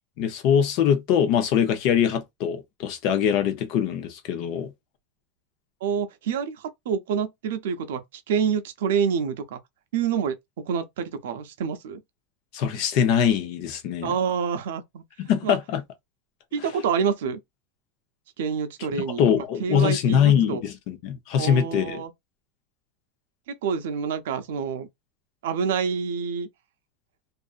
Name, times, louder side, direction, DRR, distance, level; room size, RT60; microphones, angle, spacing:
voice 1, 0.2-4.7 12.5-14.1 15.2-15.8 19.2-22.0, left 8 dB, 45° left, 0.7 m, -23 dB
voice 2, 5.8-9.6 9.9-10.4 10.6-12.0 14.0-15.0 15.4-15.6 16.5-17.4 18.4-20.6 21.4-22.1 23.5-24.9 25.4-26.5, right 7 dB, 85° right, 0.6 m, -27 dB
2.5 x 2.5 x 2.4 m
supercardioid pair, 165°, 0 cm